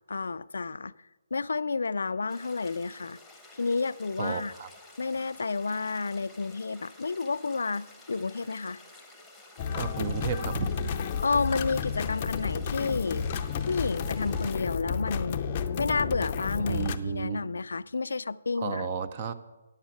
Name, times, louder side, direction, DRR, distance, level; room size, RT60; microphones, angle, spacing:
voice 1, 0.1-0.9 1.3-3.2 3.6-4.5 5.0-8.8 11.2-13.3 13.7-15.4 15.8-18.9, left 4 dB, 80° left, 0.4 m, -30 dB
sound 1, 2.3-14.6, left 2 dB, ahead, 1.2 m, -52 dB
voice 2, 4.2-4.7 9.7-10.7 16.7-17.4 18.6-19.3, right 6 dB, 35° right, 0.7 m, -32 dB
sound 2, 9.6-17.0, left 6 dB, 30° left, 0.6 m, -32 dB
9.6 x 7.3 x 8.3 m
hypercardioid pair, 160°, 0 cm